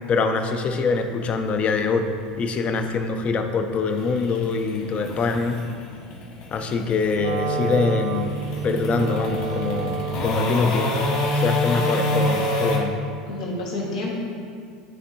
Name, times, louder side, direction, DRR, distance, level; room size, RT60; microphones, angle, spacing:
voice 1, 0.1-2.1 2.4-5.6 6.5-11.1 11.3-13.0, left 4 dB, 35° left, 6 dB, 0.6 m, -24 dB
sound 1, 1.0-12.8, left 2 dB, 60° left, 1.2 m, -28 dB
Wind instrument woodwind instrument, 7.1-13.2, right 3 dB, 65° right, 0.4 m, -29 dB
voice 2, 11.6-12.0 13.3-14.2, left 1 dB, 80° left, -3 dB, 1.4 m, -30 dB
10.5 x 3.5 x 2.8 m, 2.2 s
hypercardioid pair, 95°, 4 cm